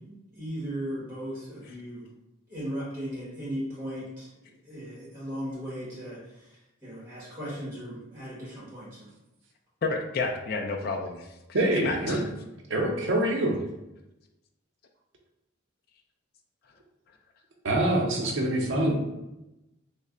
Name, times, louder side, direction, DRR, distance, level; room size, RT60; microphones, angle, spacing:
voice 1, 0.0-2.1 2.5-9.1, equal, 15° right, -8 dB, 1.1 m, -37 dB
voice 2, 9.8-11.3 11.8-12.2, left 3 dB, 50° left, 2 dB, 0.3 m, -30 dB
voice 3, 11.5-12.2 12.7-13.6 17.6-18.9, right 1 dB, 65° right, 0 dB, 0.6 m, -25 dB
3.2 x 2.1 x 3.6 m, 0.95 s
head